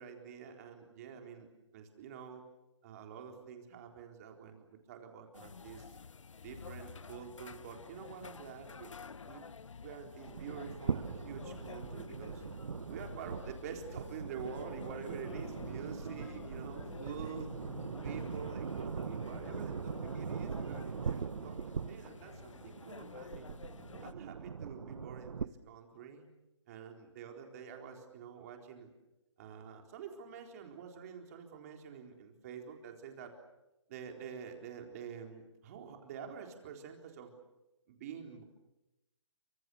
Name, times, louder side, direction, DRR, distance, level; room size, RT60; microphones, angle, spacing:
voice 1, 0.0-1.5 1.7-2.4 2.8-6.0 6.4-8.9 9.3-9.4 9.8-12.5 12.9-17.6 18.0-23.5 24.0-26.3 26.7-28.9 29.4-33.3 33.9-37.3 37.9-38.4, right 7 dB, 30° right, 3 dB, 4.0 m, -47 dB
sound 1, 5.3-24.1, left 5 dB, 85° left, 1.1 m, -50 dB
sound 2, 10.3-25.5, right 6 dB, 80° right, 1.0 m, -41 dB
sound 3, 13.8-20.9, left 5 dB, 60° left, 3.0 m, -56 dB
28.0 x 25.5 x 7.1 m, 0.95 s
hypercardioid pair, 160°, 16 cm